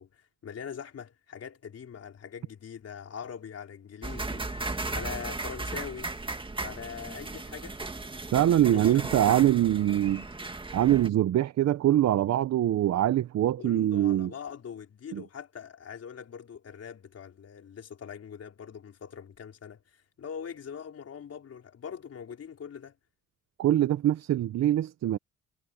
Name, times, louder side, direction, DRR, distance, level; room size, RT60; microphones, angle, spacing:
voice 1, 0.0-6.1 6.6-7.8 8.7-8.9 9.3-9.4 13.6-23.0, left 7 dB, 55° left, 4.2 m, -42 dB
sound 1, 4.0-11.1, right 2 dB, 15° right, 2.0 m, -36 dB
voice 2, 8.3-10.2 10.7-14.3 15.1-15.2 23.6-25.2, right 12 dB, 60° right, 0.8 m, -23 dB
cardioid pair, 90°, 30 cm